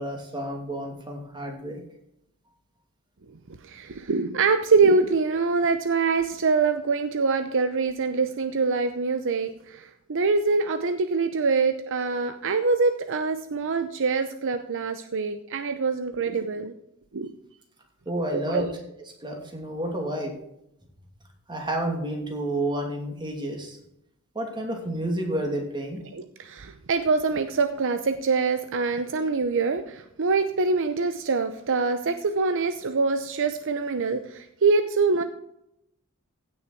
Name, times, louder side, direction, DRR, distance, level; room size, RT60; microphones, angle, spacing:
voice 1, 0.0-1.8 18.1-18.7 19.2-20.3 21.5-23.8 24.3-26.0, right 1 dB, 20° right, 1 dB, 2.6 m, -30 dB
voice 2, 3.6-16.7 17.1-17.3 18.5-18.7 26.1-35.2, right 4 dB, 60° right, 9 dB, 0.7 m, -24 dB
16.0 x 6.5 x 4.6 m, 0.79 s
head